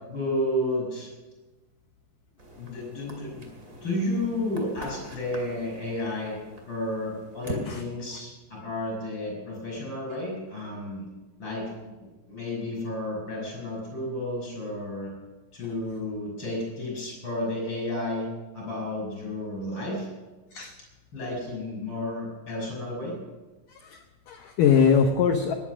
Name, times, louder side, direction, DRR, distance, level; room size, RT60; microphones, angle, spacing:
voice 1, 0.1-1.1 2.6-3.4 3.8-6.4 6.7-11.1 11.4-11.7 12.0-15.1 15.5-20.1 21.1-23.2, left 1 dB, 25° left, -1 dB, 6.3 m, -32 dB
sound 1, 2.4-7.7, equal, 30° right, 2.0 m, -42 dB
voice 2, 23.7-25.5, left 6 dB, 80° left, 5 dB, 1.9 m, -22 dB
20.0 x 10.5 x 6.2 m, 1.2 s
omnidirectional pair, 5.1 m